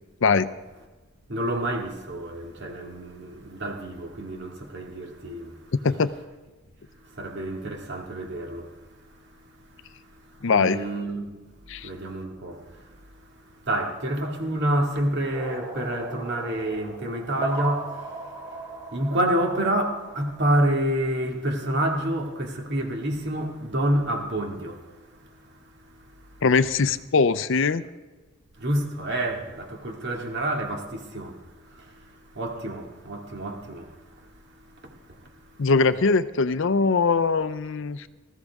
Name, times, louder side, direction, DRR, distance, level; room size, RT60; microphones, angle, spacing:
voice 1, 1.3-5.5 7.2-8.7 10.5-11.3 11.8-12.6 13.7-18.1 18.9-24.8 28.6-31.3 32.4-33.9, right 1 dB, 50° right, 2.2 m, -28 dB
voice 2, 10.4-10.8 11.7-11.9 26.4-27.8 35.6-38.1, left 4 dB, 60° left, 0.5 m, -21 dB
sound 1, 15.3-20.7, right 2 dB, 15° right, 2.8 m, -37 dB
20.0 x 14.5 x 3.6 m
head